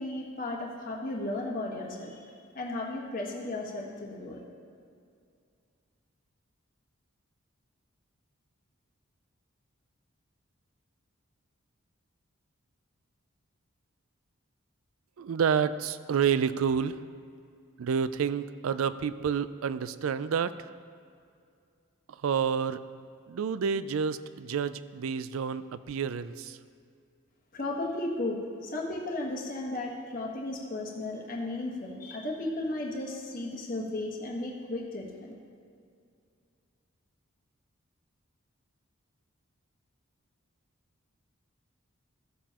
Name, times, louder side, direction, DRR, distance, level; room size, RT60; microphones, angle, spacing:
voice 1, 0.0-2.2 2.5-4.4 27.5-35.3, left 2 dB, 40° left, -1 dB, 1.3 m, -35 dB
voice 2, 15.2-17.0 17.8-20.7 22.1-22.8 23.3-26.6, right 7 dB, 80° right, 14 dB, 0.4 m, -29 dB
15.0 x 6.9 x 2.9 m, 2.3 s
head